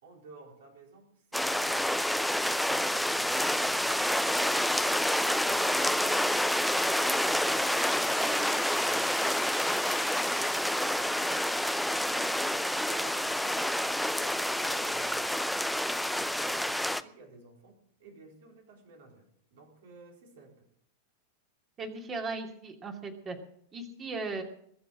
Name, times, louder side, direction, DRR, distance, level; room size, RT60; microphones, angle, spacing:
voice 1, 0.0-5.0 5.4-6.4 7.4-7.7 8.0-8.3 8.7-9.3 10.3-13.6 14.2-15.7 16.0-20.7 24.0-24.1, right 3 dB, 55° right, 1 dB, 4.2 m, -54 dB
sound 1, 1.3-17.0, left 1 dB, ahead, 0.6 m, -28 dB
voice 2, 8.2-8.5 21.8-23.4 23.7-24.4, right 3 dB, 25° right, 4 dB, 2.6 m, -37 dB
21.5 x 7.3 x 7.4 m, 0.68 s
figure-of-eight pair, 90°, 0 cm